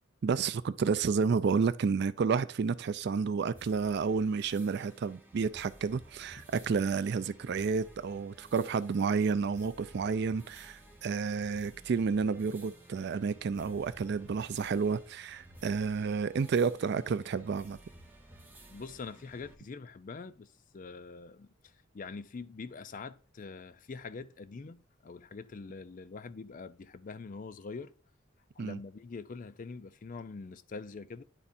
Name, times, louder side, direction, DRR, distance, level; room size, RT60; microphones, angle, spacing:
voice 1, 0.2-17.8 28.6-28.8, right 5 dB, 55° right, 0.4 m, -30 dB
sound 1, 3.5-19.5, right 1 dB, 10° right, 0.9 m, -55 dB
voice 2, 18.7-27.9 28.5-31.2, left 4 dB, 40° left, 0.4 m, -44 dB
9.8 x 3.5 x 4.2 m
head